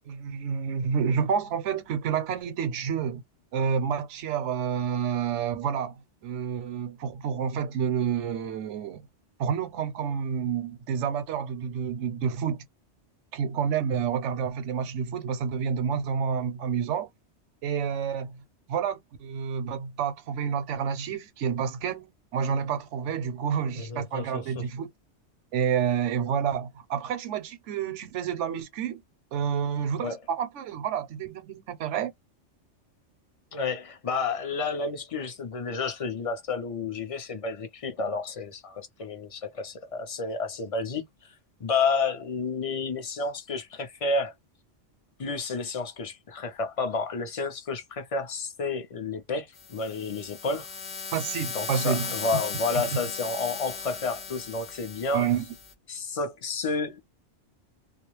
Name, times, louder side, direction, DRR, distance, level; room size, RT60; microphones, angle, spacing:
voice 1, 0.1-3.2 3.5-9.1 9.4-12.6 13.3-17.1 17.6-18.4 18.7-24.9 25.5-29.0 29.3-32.1 51.1-52.1 55.1-55.4, right 7 dB, 75° right, 0.9 m, -29 dB
voice 2, 23.8-24.7 30.0-30.2 33.5-41.3 41.6-44.3 45.2-50.7 51.5-55.3 55.9-57.0, left 4 dB, 40° left, 0.6 m, -31 dB
sound 1, 49.6-55.7, left 5 dB, 65° left, 0.9 m, -37 dB
2.4 x 2.0 x 3.0 m
omnidirectional pair, 1.2 m